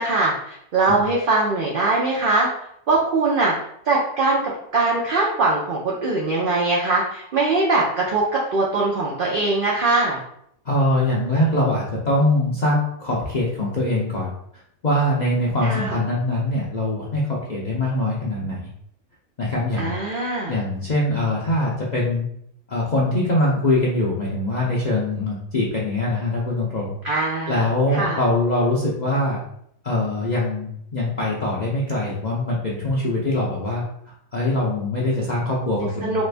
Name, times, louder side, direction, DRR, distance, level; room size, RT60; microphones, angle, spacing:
voice 1, 0.0-2.5 2.9-3.5 3.9-10.2 15.6-16.0 19.8-20.6 27.0-27.6 27.9-28.2 35.7-36.2, right 3 dB, 65° right, -3 dB, 0.5 m, -21 dB
voice 2, 10.6-14.3 14.8-18.7 19.4-19.9 20.5-22.3 22.7-26.9 27.5-29.4 29.8-33.8 34.3-36.2, left 1 dB, 60° left, -5 dB, 0.4 m, -23 dB
3.0 x 2.5 x 3.2 m, 0.72 s
omnidirectional pair, 1.5 m